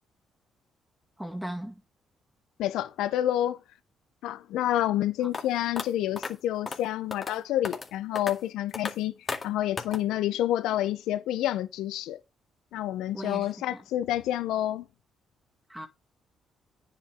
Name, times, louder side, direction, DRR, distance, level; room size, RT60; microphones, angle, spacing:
voice 1, 1.2-1.8 5.2-5.3 13.1-13.8 15.7-15.9, right 1 dB, 5° right, 2.2 m, -38 dB
voice 2, 2.6-3.6 4.2-9.1 9.4-12.2 12.7-14.9, left 12 dB, 90° left, 0.7 m, -28 dB
sound 1, 5.3-5.4 5.8-5.9 6.2-6.3 6.7-6.8 7.1-7.3 7.6-7.9 8.2-8.3 8.7-8.9 9.3-9.4 9.8-10.0, left 4 dB, 35° left, 2.0 m, -33 dB
9.5 x 7.8 x 3.6 m
cardioid pair, 90°, 0 cm